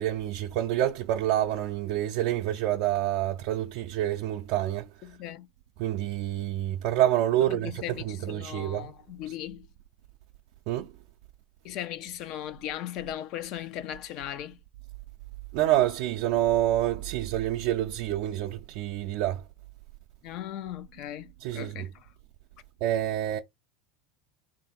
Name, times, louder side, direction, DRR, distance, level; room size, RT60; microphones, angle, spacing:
voice 1, 0.0-4.9 5.8-8.9 10.7-10.9 15.5-19.4 21.4-21.9 22.8-23.4, right 13 dB, 65° right, 0.5 m, -27 dB
voice 2, 5.0-5.5 7.5-9.7 11.6-14.6 20.2-22.1, left 11 dB, 55° left, 0.6 m, -38 dB
3.3 x 2.6 x 4.0 m
hypercardioid pair, 100°, 0 cm